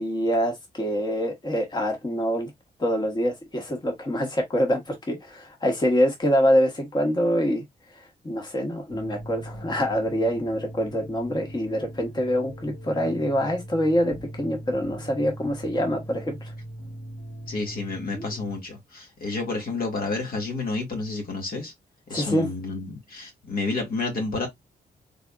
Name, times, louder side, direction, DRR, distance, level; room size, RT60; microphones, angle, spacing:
voice 1, 0.0-2.5 2.8-7.6 8.2-16.5 18.1-18.2 22.1-22.4, equal, 25° left, 1.2 m, -25 dB
sound 1, 8.9-18.6, right 1 dB, 75° left, 2.3 m, -40 dB
voice 2, 17.5-21.7 22.1-24.5, left 3 dB, 60° left, 1.6 m, -30 dB
3.7 x 3.3 x 2.3 m
cardioid pair, 85°, 17 cm